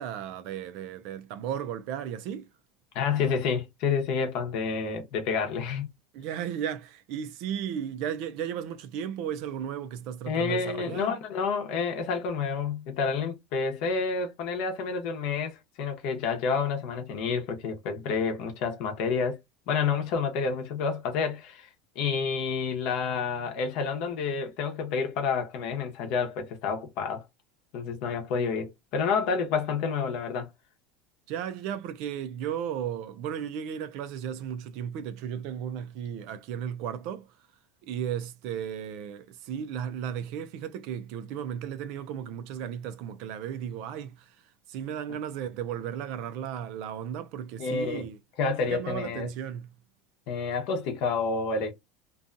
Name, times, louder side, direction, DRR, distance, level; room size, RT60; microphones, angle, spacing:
voice 1, 0.0-2.5 6.1-11.2 31.3-37.3 37.8-44.3 44.7-48.2 48.7-49.7, right 9 dB, 45° right, 0.3 m, -35 dB
voice 2, 2.9-5.9 10.3-19.4 19.7-21.7 22.0-27.2 27.7-30.5 47.6-48.1 48.4-49.3 50.3-51.7, left 5 dB, 45° left, 0.8 m, -29 dB
2.6 x 2.3 x 2.5 m
cardioid pair, 180°, 0 cm